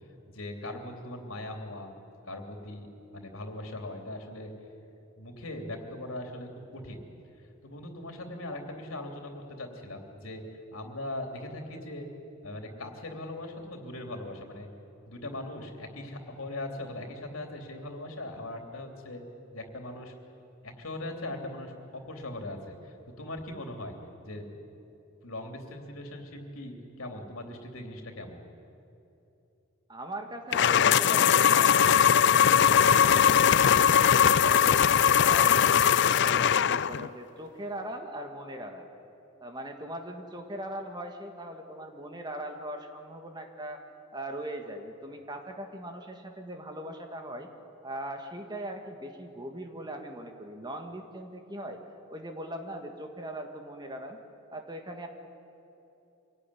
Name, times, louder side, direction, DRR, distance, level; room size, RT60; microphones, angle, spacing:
voice 1, 0.3-1.9 2.3-2.9 3.1-4.5 5.2-7.0 7.6-10.4 10.7-12.1 12.4-14.7 15.1-19.2 19.5-20.1 20.6-24.0 24.2-24.5 25.2-28.4, left 1 dB, 85° left, 3 dB, 3.1 m, -40 dB
voice 2, 29.9-34.8 35.2-35.8 36.1-38.9 39.4-43.8 44.1-47.5 47.8-51.8 52.1-54.2 54.5-55.1, right 1 dB, 20° right, 4 dB, 1.7 m, -40 dB
sound 1, 30.5-37.1, left 8 dB, 55° left, 0.5 m, -21 dB
24.5 x 17.5 x 9.9 m, 2.9 s
head